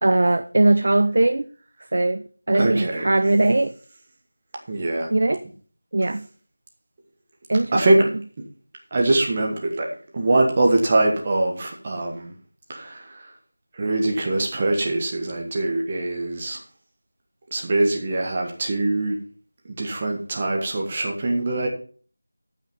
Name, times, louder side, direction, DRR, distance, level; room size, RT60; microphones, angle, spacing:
voice 1, 0.0-1.4 1.9-3.7 5.1-5.4 5.9-6.3 7.5-8.1, right 2 dB, 45° right, 10 dB, 0.6 m, -20 dB
voice 2, 2.5-3.1 4.7-5.1 7.7-8.0 8.9-9.9 10.1-12.3 12.7-13.0 13.8-16.6 17.5-19.2 19.8-21.7, right 2 dB, 20° right, 0 dB, 1.3 m, -22 dB
14.0 x 5.7 x 5.2 m, 0.42 s
figure-of-eight pair, 175°, 0 cm